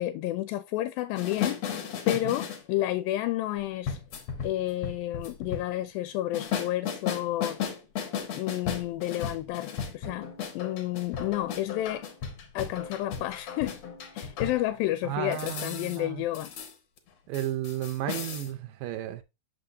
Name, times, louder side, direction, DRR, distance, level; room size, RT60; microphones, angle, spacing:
voice 1, 0.0-1.6 2.1-4.0 4.4-7.6 8.3-10.3 10.5-12.0 12.5-13.8 14.2-16.5, left 15 dB, 85° left, 2.3 m, -30 dB
sound 1, 1.2-2.6 3.9-5.7 6.3-14.7 15.3-16.0 16.3-16.7 17.0-17.1 17.3-18.5, left 7 dB, 60° left, 2.1 m, -35 dB
voice 2, 15.0-16.2 17.3-19.2, right 12 dB, 80° right, 2.3 m, -33 dB
6.8 x 6.5 x 2.6 m
omnidirectional pair, 4.1 m